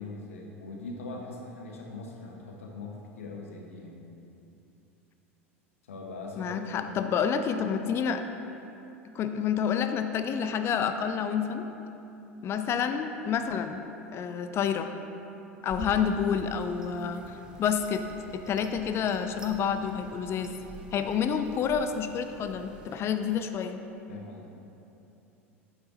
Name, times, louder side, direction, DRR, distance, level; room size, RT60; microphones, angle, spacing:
voice 1, 0.0-4.0 5.9-6.7 24.1-24.5, left 3 dB, 75° left, 0 dB, 1.1 m, -41 dB
voice 2, 6.4-8.2 9.1-11.7 12.4-13.8 14.1-14.9 15.6-18.0 18.3-20.5 20.9-23.8, left 7 dB, 35° left, 8 dB, 0.5 m, -29 dB
Cat liking herself, 15.7-23.0, right 1 dB, 10° right, 0.9 m, -47 dB
9.0 x 8.0 x 2.7 m, 2.9 s
figure-of-eight pair, 80°, 7 cm